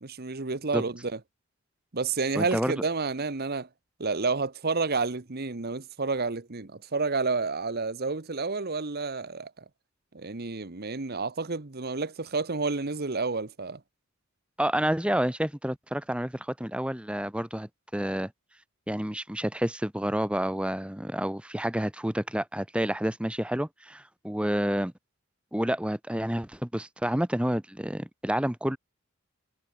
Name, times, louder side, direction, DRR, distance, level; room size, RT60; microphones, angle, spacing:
voice 1, 0.0-1.2 1.9-3.7 4.0-9.6 10.1-13.8, right 4 dB, 45° right, 1.1 m, -30 dB
voice 2, 2.3-2.7 14.6-18.3 18.9-24.9 25.5-28.8, equal, 5° right, 1.1 m, -29 dB
head